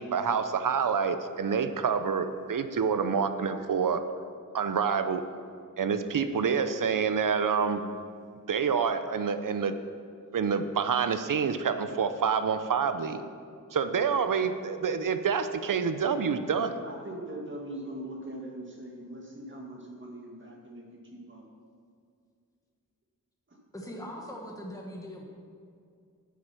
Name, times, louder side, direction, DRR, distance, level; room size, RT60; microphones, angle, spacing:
voice 1, 0.0-4.0 4.5-5.2 5.8-7.8 8.5-9.7 10.3-13.2 13.7-16.7, right 6 dB, 75° right, 10 dB, 0.7 m, -27 dB
voice 2, 16.8-20.8 21.1-21.4 23.5-23.6, right 1 dB, 35° right, -1 dB, 2.0 m, -41 dB
voice 3, 23.7-25.2, equal, 10° left, -1 dB, 1.4 m, -40 dB
9.8 x 8.5 x 5.9 m, 2.3 s
wide cardioid pair, 120°, 33 cm